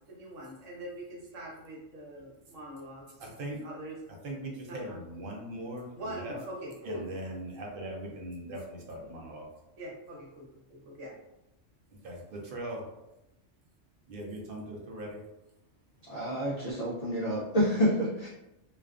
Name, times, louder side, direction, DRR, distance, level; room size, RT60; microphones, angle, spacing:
voice 1, 0.0-3.1 3.4-3.9 4.7-5.0 5.9-7.0 9.8-10.5 10.8-11.1, right 1 dB, 80° right, -3 dB, 1.1 m, -42 dB
voice 2, 3.2-3.6 4.2-6.3 6.8-9.5 11.9-12.8 14.1-15.2, right 1 dB, 60° right, 0 dB, 0.6 m, -40 dB
voice 3, 16.1-18.3, equal, 75° left, -5 dB, 0.3 m, -28 dB
2.4 x 2.2 x 2.3 m, 0.92 s
omnidirectional pair, 1.3 m